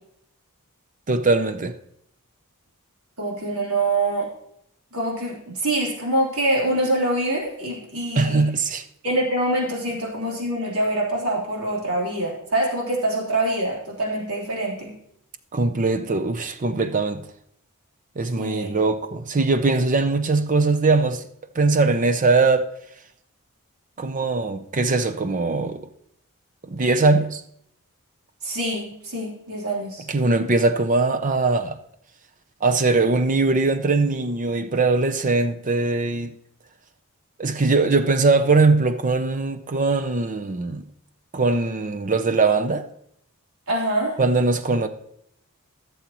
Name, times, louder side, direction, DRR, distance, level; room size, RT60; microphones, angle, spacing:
voice 1, 1.1-1.8 8.1-8.8 15.5-17.2 18.2-21.2 21.6-22.7 24.0-25.8 26.7-27.4 30.1-31.8 32.6-36.3 37.4-40.8 41.3-42.9 44.2-44.9, right 3 dB, 35° right, 0.6 m, -21 dB
voice 2, 3.2-4.3 4.9-8.5 9.0-15.0 18.4-18.7 28.4-30.5 43.7-44.2, right 1 dB, 80° right, 3.4 m, -25 dB
15.5 x 7.0 x 3.0 m
head